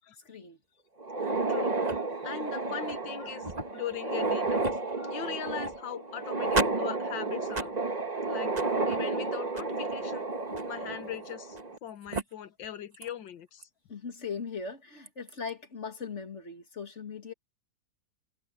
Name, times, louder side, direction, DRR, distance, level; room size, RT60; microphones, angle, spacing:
voice 1, 0.2-0.6 13.9-17.3, left 5 dB, 40° left, 2.4 m, -39 dB
sound 1, 1.0-11.8 12.1-12.2 13.0-13.1 13.6-13.7 15.1-15.3, right 3 dB, 25° right, 1.3 m, -31 dB
voice 2, 1.5-4.7 4.9-7.7 8.3-10.3 10.7-13.7, left 9 dB, 85° left, 2.0 m, -40 dB
omnidirectional pair, 2.0 m